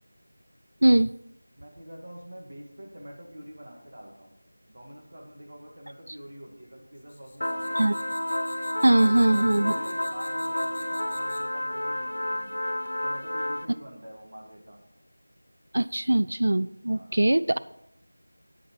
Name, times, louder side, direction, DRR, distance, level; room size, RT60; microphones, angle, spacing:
voice 1, 1.5-4.4 4.7-7.9 9.0-12.6 13.0-14.8 16.9-17.1 17.5-17.6, equal, 35° right, -1 dB, 2.2 m, -46 dB
sound 1, 7.0-11.6, left 2 dB, 20° left, 1.1 m, -48 dB
sound 2, 7.4-13.7, left 1 dB, 85° left, 0.9 m, -30 dB
voice 2, 8.8-9.7 15.7-17.6, right 1 dB, 55° right, 15 dB, 0.3 m, -21 dB
9.7 x 8.4 x 4.9 m, 0.78 s
figure-of-eight pair, 175°, 0 cm